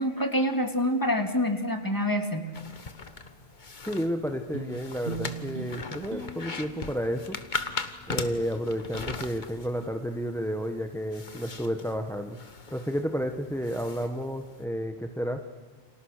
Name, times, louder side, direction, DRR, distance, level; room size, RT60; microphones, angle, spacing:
voice 1, 0.0-2.5, equal, 20° left, 4 dB, 2.5 m, -26 dB
sound 1, 2.5-14.6, left 4 dB, 50° left, 1.5 m, -40 dB
voice 2, 3.9-7.4 8.1-12.4 12.7-15.4, equal, 5° left, 5 dB, 1.2 m, -31 dB
sound 2, 4.5-9.2, right 4 dB, 70° right, 1.7 m, -41 dB
29.5 x 26.5 x 6.6 m, 1.4 s
omnidirectional pair, 1.0 m